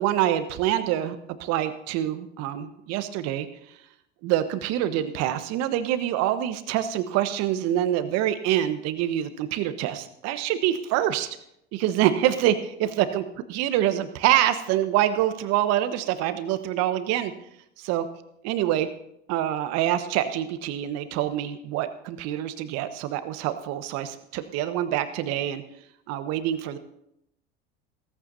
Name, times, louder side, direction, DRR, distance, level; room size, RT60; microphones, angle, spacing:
voice 1, 0.0-3.5 4.2-11.3 11.7-13.2 13.5-17.3 17.8-18.0 18.4-18.9 19.3-25.6 26.1-26.8, right 12 dB, 55° right, 10 dB, 1.3 m, -25 dB
16.5 x 14.5 x 2.7 m, 0.78 s
hypercardioid pair, 80°, 32 cm